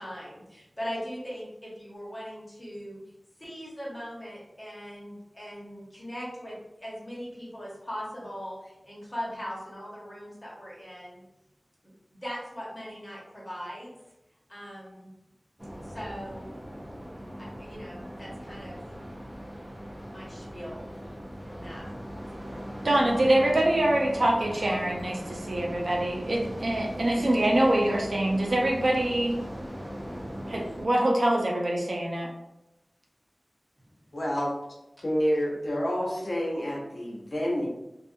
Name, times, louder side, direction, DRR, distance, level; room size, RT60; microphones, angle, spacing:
voice 1, 0.0-3.0 3.4-11.2 12.2-13.9 14.5-15.1 15.8-16.5 17.4-18.8 20.1-20.9 21.5-21.9, equal, 20° left, -6 dB, 1.1 m, -40 dB
sound 1, 15.6-30.9, equal, 20° right, 0.5 m, -39 dB
voice 2, 22.8-29.4 30.5-32.3, right 1 dB, 75° right, -1 dB, 0.5 m, -25 dB
voice 3, 34.1-34.5 35.0-37.7, equal, 65° left, -3 dB, 0.7 m, -28 dB
2.6 x 2.4 x 2.5 m, 0.92 s
wide cardioid pair, 65°, 0 cm